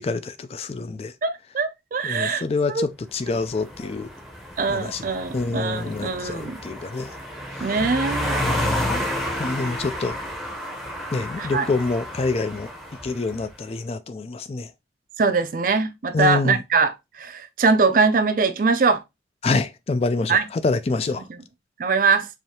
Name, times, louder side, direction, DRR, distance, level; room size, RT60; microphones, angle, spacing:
voice 1, 0.0-1.1 2.0-4.1 4.7-5.0 5.3-7.1 8.4-9.1 9.4-10.2 11.1-12.7 13.0-14.7 16.1-16.6 19.4-21.2, left 3 dB, 35° left, 0.3 m, -26 dB
voice 2, 1.2-2.4 2.7-2.9 4.6-6.6 7.6-8.4 11.4-11.7 15.2-19.0 20.3-20.4 21.8-22.3, right 4 dB, 50° right, 0.4 m, -22 dB
sound 1, 3.2-13.5, equal, ahead, 0.7 m, -31 dB
4.8 x 2.7 x 2.8 m
head